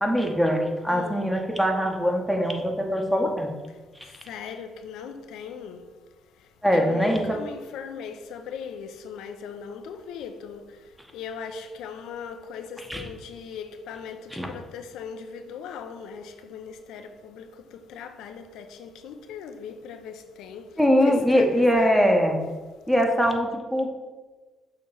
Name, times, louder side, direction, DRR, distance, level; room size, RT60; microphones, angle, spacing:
voice 1, 0.0-3.5 6.6-7.4 12.8-13.1 14.3-14.5 20.8-22.4 22.9-23.9, equal, ahead, 1.0 m, -22 dB
voice 2, 4.3-5.8 6.7-10.8 11.1-20.7 21.0-22.0, left 6 dB, 90° left, 0.5 m, -39 dB
6.4 x 3.0 x 5.4 m
cardioid pair, 90°, 0 cm